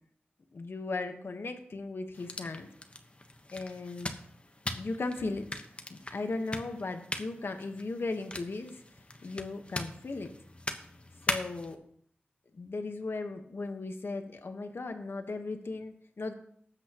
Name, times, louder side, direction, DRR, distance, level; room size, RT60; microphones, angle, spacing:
voice 1, 0.5-2.7 3.5-4.2 4.7-5.5 5.9-8.8 9.2-10.3 11.3-11.8 12.5-16.3, left 3 dB, 80° left, 6 dB, 1.3 m, -37 dB
sound 1, 2.1-11.7, left 1 dB, 30° left, 1.2 m, -40 dB
19.0 x 8.2 x 3.0 m, 0.65 s
wide cardioid pair, 75°, 4 cm